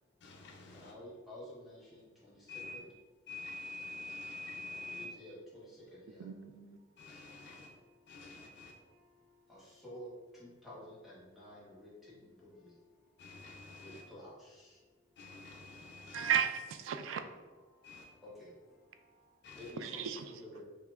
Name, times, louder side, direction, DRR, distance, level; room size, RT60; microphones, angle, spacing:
voice 1, 0.2-0.9 2.5-2.8 3.3-5.1 7.0-7.7 8.1-8.8 13.2-14.1 15.2-16.4 17.8-18.1 19.4-19.7, left 2 dB, 60° left, -1 dB, 0.5 m, -47 dB
voice 2, 0.7-2.8 4.9-6.3 7.0-12.8 13.3-13.4 13.8-14.8 16.1-16.3 17.2-17.4 17.6-20.1 20.4-20.7, left 1 dB, ahead, -8 dB, 1.1 m, -53 dB
voice 3, 6.2-6.8 16.1-17.2 19.8-20.3, right 8 dB, 75° right, 8 dB, 0.3 m, -34 dB
5.6 x 2.1 x 2.3 m, 1.3 s
head